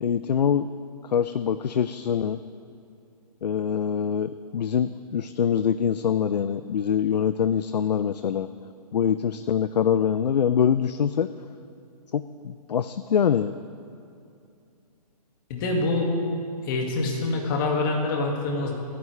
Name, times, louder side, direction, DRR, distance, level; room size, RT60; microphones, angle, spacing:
voice 1, 0.0-0.7 1.0-2.4 3.4-8.5 8.9-11.3 12.1-13.5, left 8 dB, 90° left, 12 dB, 0.5 m, -24 dB
voice 2, 15.5-16.1 16.6-18.7, left 2 dB, 30° left, 1 dB, 2.0 m, -25 dB
27.0 x 9.5 x 3.3 m, 2.5 s
hypercardioid pair, 160°, 21 cm